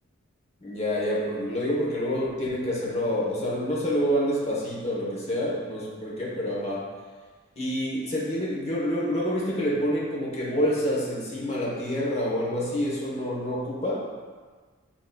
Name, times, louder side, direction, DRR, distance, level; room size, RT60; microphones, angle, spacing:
voice 1, 0.6-6.8 7.6-14.0, equal, 30° left, -5 dB, 1.1 m, -27 dB
7.8 x 2.9 x 2.3 m, 1.5 s
head